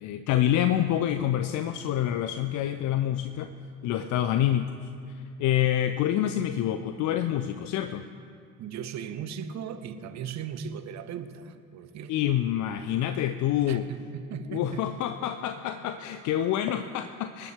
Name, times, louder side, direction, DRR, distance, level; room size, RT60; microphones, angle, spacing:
voice 1, 0.0-3.5 3.8-4.8 5.1-8.0 12.1-13.9 14.5-17.5, left 11 dB, 45° left, 9 dB, 0.6 m, -27 dB
voice 2, 8.6-12.3 13.7-15.0, right 7 dB, 40° right, 11 dB, 1.0 m, -38 dB
25.5 x 9.9 x 3.5 m, 2.4 s
figure-of-eight pair, 55°, 42 cm